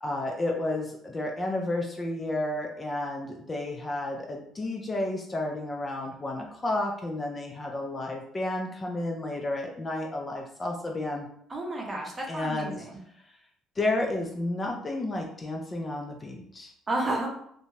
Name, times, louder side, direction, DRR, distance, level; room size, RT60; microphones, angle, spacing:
voice 1, 0.0-11.3 12.3-12.9 13.2-13.4 13.8-16.7, left 2 dB, 25° left, 1 dB, 0.4 m, -31 dB
voice 2, 11.5-12.9 16.9-17.3, right 2 dB, 25° right, -1 dB, 0.7 m, -31 dB
2.6 x 2.2 x 3.1 m, 0.69 s
cardioid pair, 110°, 0 cm